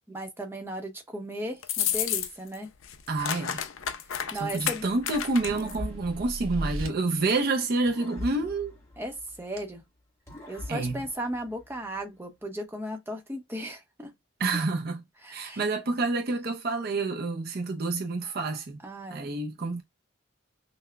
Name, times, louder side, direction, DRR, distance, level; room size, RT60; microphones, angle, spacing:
voice 1, 0.1-2.7 4.3-4.9 9.0-9.8 10.5-14.1 15.2-15.6 18.8-19.3, right 1 dB, 10° right, 0.8 m, -36 dB
sound 1, 1.6-2.6 2.8-5.8, left 9 dB, 75° left, 0.5 m, -31 dB
voice 2, 3.1-3.6 4.4-8.8 10.7-11.0 14.4-15.0 15.3-18.8 19.1-19.8, right 3 dB, 50° right, 0.5 m, -28 dB
sound 2, 4.1-6.9, right 1 dB, 80° right, 0.9 m, -38 dB
sound 3, 5.5-7.4 7.9-9.7 10.3-12.0, left 1 dB, 15° left, 1.1 m, -43 dB
5.7 x 2.1 x 2.2 m
head